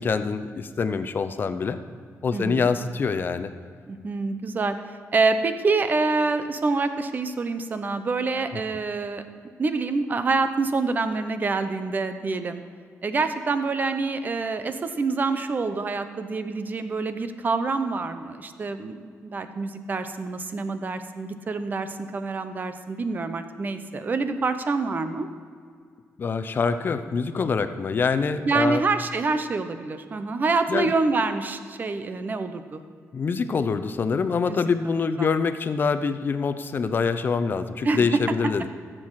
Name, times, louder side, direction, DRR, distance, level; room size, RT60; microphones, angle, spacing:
voice 1, 0.0-1.8 2.2-3.5 26.2-28.8 30.7-30.9 33.1-38.7, left 5 dB, 40° left, 10 dB, 0.6 m, -25 dB
voice 2, 2.3-2.7 3.9-9.2 9.6-12.6 13.0-18.9 19.2-25.3 28.4-32.8 34.5-34.9 35.2-35.3 37.8-38.1, right 3 dB, 35° right, 9 dB, 0.8 m, -26 dB
14.5 x 7.7 x 4.8 m, 2.1 s
wide cardioid pair, 145°, 5 cm